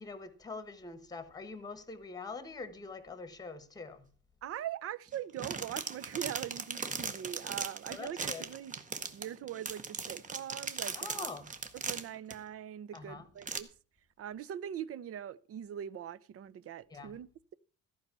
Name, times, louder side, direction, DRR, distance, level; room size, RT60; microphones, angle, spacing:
voice 1, 0.0-4.1 7.9-8.5 10.9-11.5 12.9-13.2 16.9-17.1, left 4 dB, 10° left, 1.2 m, -44 dB
voice 2, 4.4-8.8 9.1-11.3 11.9-13.7 14.2-17.5, right 10 dB, 40° right, 0.5 m, -42 dB
sound 1, 5.1-12.3 13.0-13.1 13.4-13.6, right 5 dB, 20° right, 0.8 m, -38 dB
14.5 x 5.4 x 8.2 m
cardioid pair, 175°, 36 cm